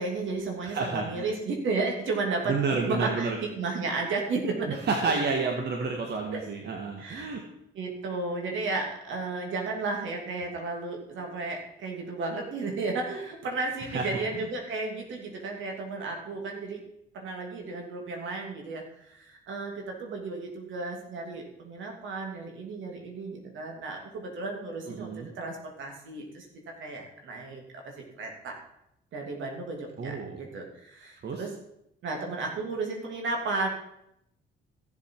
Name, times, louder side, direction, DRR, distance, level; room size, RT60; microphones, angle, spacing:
voice 1, 0.0-2.5 2.8-4.8 6.3-6.4 7.0-7.3 7.7-16.8 17.1-26.5 26.8-28.6 29.1-31.5 32.0-33.7, right 3 dB, 75° right, 1 dB, 2.9 m, -33 dB
voice 2, 0.6-1.3 2.5-3.4 4.7-7.4 13.9-14.2 24.9-25.3 30.0-30.4 31.2-31.4, right 4 dB, 60° right, 2 dB, 1.8 m, -30 dB
15.0 x 7.6 x 4.8 m, 0.79 s
cardioid pair, 90°, 20 cm